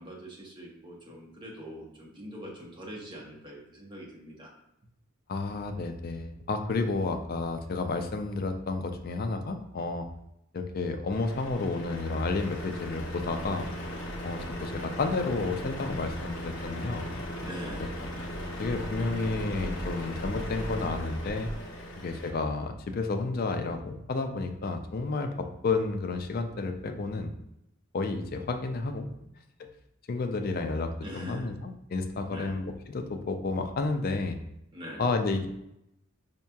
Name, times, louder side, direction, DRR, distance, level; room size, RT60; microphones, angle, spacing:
voice 1, 0.0-4.5 17.4-18.0 31.0-31.5 32.3-32.5 34.7-35.0, equal, 20° right, -2 dB, 0.7 m, -43 dB
voice 2, 5.3-10.1 10.5-13.7 14.2-17.1 18.6-21.5 22.0-27.3 27.9-29.1 29.6-29.7 30.1-34.4 35.0-35.5, left 3 dB, 40° left, 6 dB, 0.3 m, -31 dB
Truck, 11.1-22.3, equal, 60° left, 0.7 m, -37 dB
4.5 x 2.8 x 2.2 m, 0.81 s
head